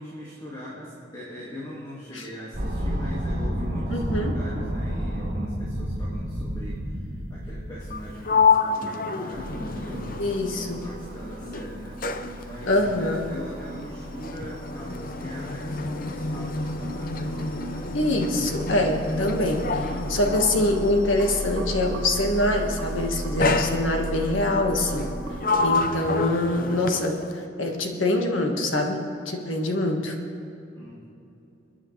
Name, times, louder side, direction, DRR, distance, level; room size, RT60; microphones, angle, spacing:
voice 1, 0.0-10.3 10.5-17.9 30.8-31.0, equal, 20° left, -6 dB, 2.0 m, -41 dB
sound 1, 2.5-8.4, equal, 50° right, 3.5 m, -29 dB
voice 2, 3.9-4.4 10.2-10.8 12.7-13.3 17.9-25.1 25.6-27.2 27.6-30.2, left 1 dB, 75° left, 2 dB, 1.6 m, -24 dB
Sliding door, 7.8-11.1 11.4-21.6 22.5-22.8 23.4-24.3 24.9-27.4, left 4 dB, 45° left, 0.6 m, -29 dB
sound 2, 9.3-25.4, right 1 dB, 75° right, 2.2 m, -36 dB
28.5 x 10.0 x 3.3 m, 2.8 s
head